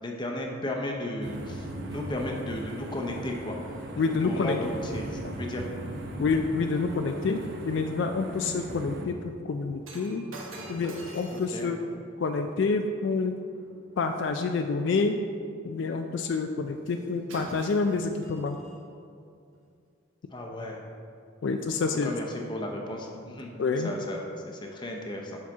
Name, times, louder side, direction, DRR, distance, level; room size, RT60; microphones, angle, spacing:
voice 1, 0.0-3.6 4.1-5.7 11.3-11.7 20.3-20.8 22.0-23.5 23.8-25.4, left 1 dB, 20° left, 0 dB, 0.7 m, -35 dB
sound 1, 1.2-9.1, right 1 dB, 50° right, 0.7 m, -38 dB
voice 2, 4.0-4.6 5.2-5.3 6.2-9.2 9.4-10.3 10.7-11.8 12.2-13.4 14.0-15.2 15.6-18.6 21.4-22.2 23.6-23.9, left 4 dB, 60° left, 5 dB, 0.3 m, -28 dB
Shatter, 9.8-14.2 16.9-17.0 17.3-18.8 19.5-19.7, right 1 dB, 80° right, 1.1 m, -46 dB
7.5 x 5.7 x 3.5 m, 2.3 s
head